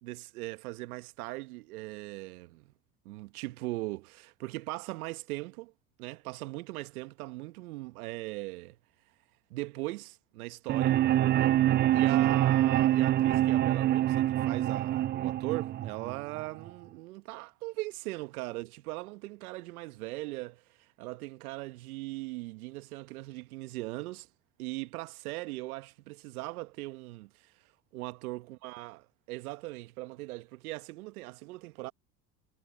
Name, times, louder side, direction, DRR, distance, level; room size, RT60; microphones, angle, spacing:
voice 1, 0.0-2.7 3.0-5.7 6.0-8.8 9.5-11.0 11.9-24.3 24.6-27.5 27.9-29.0 29.3-31.9, right 21 dB, 75° right, 1.5 m, -39 dB
sound 1, 10.7-16.7, right 13 dB, 25° right, 0.3 m, -25 dB
hypercardioid pair, 70°, 44 cm